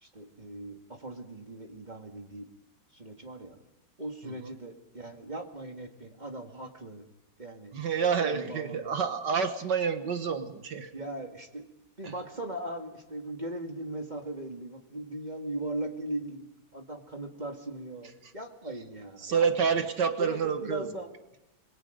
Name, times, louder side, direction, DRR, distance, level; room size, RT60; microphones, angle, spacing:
voice 1, 0.0-2.5 2.9-3.6 4.0-7.1 7.4-7.7 8.2-9.1 10.9-11.6 12.0-19.8 20.2-21.1, right 1 dB, 20° right, 3 dB, 2.2 m, -39 dB
voice 2, 7.7-10.9 12.0-12.1 18.2-18.3 19.2-20.9, right 6 dB, 60° right, 8 dB, 1.9 m, -28 dB
27.0 x 22.5 x 5.2 m, 0.94 s
omnidirectional pair, 2.1 m